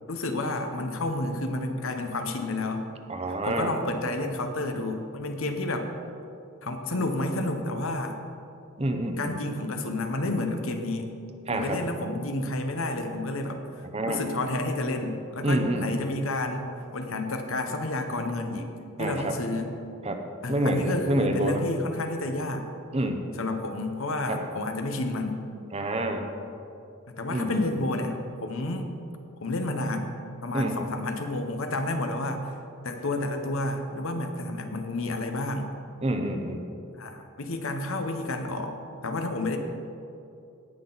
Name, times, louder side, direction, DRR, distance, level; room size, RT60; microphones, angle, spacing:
voice 1, 0.1-2.9 3.4-5.9 6.6-8.2 9.2-11.1 11.5-13.6 14.1-16.6 16.9-18.7 19.0-19.7 20.4-22.7 23.4-25.4 27.2-28.9 29.4-32.5 32.8-35.7 37.0-38.8 39.0-39.6, left 2 dB, 70° left, 6 dB, 1.0 m, -30 dB
voice 2, 3.1-3.7 8.8-9.3 11.5-11.8 13.9-14.2 15.4-15.9 19.0-19.3 20.0-20.2 20.5-21.6 22.9-23.2 24.3-24.4 25.7-26.2 27.3-27.7 30.5-30.8 36.0-36.6, right 1 dB, 30° right, 5 dB, 0.7 m, -27 dB
17.5 x 5.9 x 4.0 m, 2.7 s
head